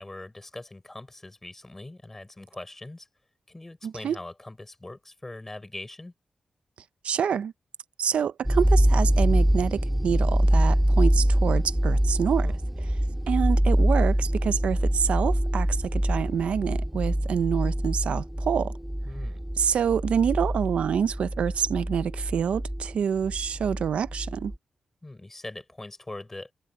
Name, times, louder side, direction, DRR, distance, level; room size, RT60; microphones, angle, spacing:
voice 1, 0.0-3.1 3.5-6.1 12.4-12.6 19.1-19.4 25.0-26.5, left 2 dB, 15° left, 5.4 m, -41 dB
voice 2, 3.8-4.2 7.0-7.5 8.0-12.5 12.8-13.0 13.3-18.7 19.6-24.5, right 7 dB, 75° right, 0.5 m, -27 dB
sound 1, 8.4-24.6, equal, 5° right, 2.2 m, -24 dB
wide cardioid pair, 170°, 2 cm